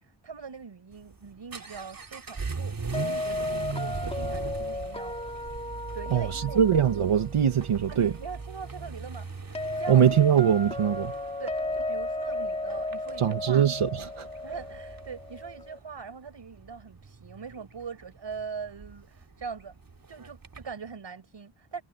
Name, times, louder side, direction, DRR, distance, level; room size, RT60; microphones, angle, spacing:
voice 1, 0.2-2.8 3.0-5.2 5.9-6.7 7.9-10.1 11.4-13.7 14.4-19.7 20.1-21.8, right 5 dB, 60° right, 5.8 m, -41 dB
Vehicle / Accelerating revving vroom, 0.9-20.7, right 4 dB, 45° right, 3.2 m, -40 dB
sound 1, 2.9-15.8, left 2 dB, 10° left, 2.9 m, -35 dB
voice 2, 6.1-8.1 9.9-11.1 13.2-14.3, right 9 dB, 85° right, 2.0 m, -22 dB
wide cardioid pair, 120°, 50 cm